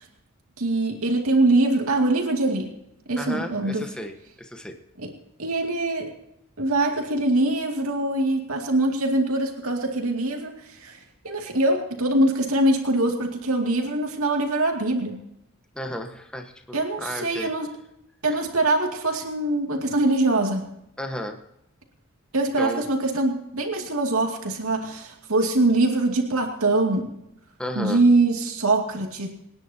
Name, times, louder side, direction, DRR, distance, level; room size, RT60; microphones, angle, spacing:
voice 1, 0.6-2.7 3.1-3.9 5.0-5.1 5.4-6.1 6.6-11.0 11.2-15.2 16.7-17.7 18.2-20.7 22.3-27.1 27.8-29.3, right 2 dB, 80° right, 2 dB, 2.5 m, -23 dB
voice 2, 3.2-4.7 15.7-17.5 21.0-21.4 22.6-22.8 27.6-28.0, equal, 5° left, 3 dB, 1.3 m, -33 dB
27.0 x 10.5 x 2.9 m, 0.81 s
head